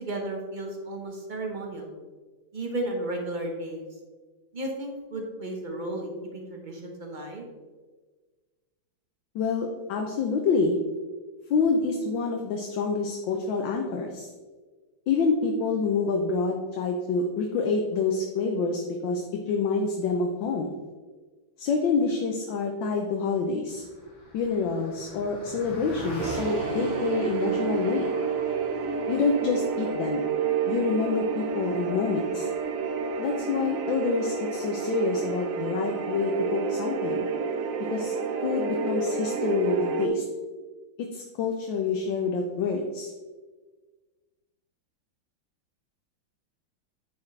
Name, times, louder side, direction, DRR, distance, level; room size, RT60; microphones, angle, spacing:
voice 1, 0.0-1.9 2.5-3.9 4.5-7.4, right 1 dB, 30° right, 1 dB, 0.9 m, -34 dB
voice 2, 9.3-10.8 11.5-14.3 15.1-20.8 21.6-23.8 24.3-28.1 29.1-30.2 30.7-32.5 33.2-37.3 37.9-38.1 38.4-40.2 41.0-43.1, left 4 dB, 70° left, 2 dB, 1.4 m, -27 dB
Car passing by, 23.7-33.3, left 1 dB, 40° left, 1.9 m, -44 dB
sound 1, 26.2-40.1, right 5 dB, 75° right, 0.7 m, -29 dB
9.5 x 6.3 x 3.3 m, 1.4 s
omnidirectional pair, 2.2 m